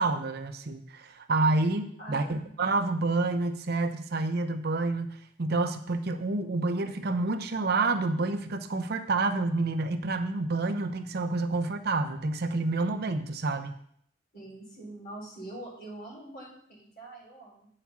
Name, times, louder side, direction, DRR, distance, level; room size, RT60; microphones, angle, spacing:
voice 1, 0.0-13.8, right 3 dB, 55° right, 8 dB, 0.6 m, -28 dB
voice 2, 2.0-2.5 14.3-17.7, right 1 dB, 50° left, -3 dB, 4.0 m, -44 dB
8.7 x 4.8 x 7.1 m, 0.65 s
head